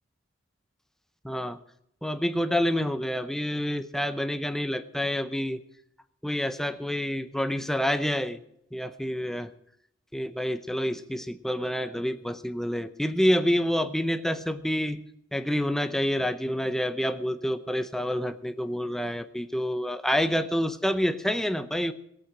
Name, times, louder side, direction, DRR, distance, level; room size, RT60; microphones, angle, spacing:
voice 1, 1.2-1.6 2.0-5.6 6.2-8.4 8.7-9.5 10.1-15.0 15.3-21.9, equal, ahead, 10 dB, 0.6 m, -28 dB
17.0 x 8.8 x 6.1 m, 0.75 s
head